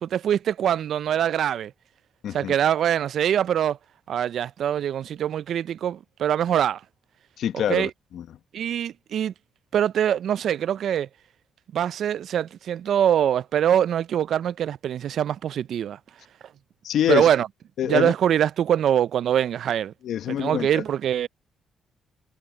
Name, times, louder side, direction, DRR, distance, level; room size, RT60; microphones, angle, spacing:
voice 1, 0.0-1.7 2.3-3.8 4.1-6.8 7.7-7.9 8.5-9.3 9.7-11.1 11.7-16.0 17.1-17.5 17.8-19.9 20.3-21.3, right 10 dB, 65° right, 0.4 m, -23 dB
voice 2, 2.2-2.5 7.4-8.3 16.8-17.3 17.8-18.1 20.0-20.8, left 10 dB, 75° left, 1.1 m, -25 dB
cardioid pair, 90°, 0 cm